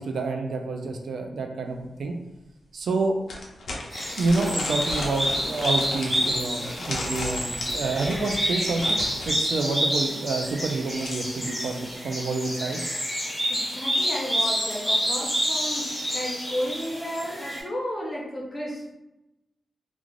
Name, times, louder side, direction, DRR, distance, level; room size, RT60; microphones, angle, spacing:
voice 1, 0.0-2.1 2.7-3.1 4.2-9.0 9.3-12.8, right 3 dB, 70° right, 3 dB, 0.3 m, -28 dB
sound 1, 1.8-1.9 2.3-2.4 3.3-9.4 10.6-11.5, left 2 dB, 70° left, 0.6 m, -35 dB
sound 2, 3.9-17.6, equal, 5° right, 0.9 m, -28 dB
voice 2, 13.5-18.9, equal, 15° left, -4 dB, 0.6 m, -33 dB
2.5 x 2.3 x 3.1 m, 0.93 s
wide cardioid pair, 170°, 0 cm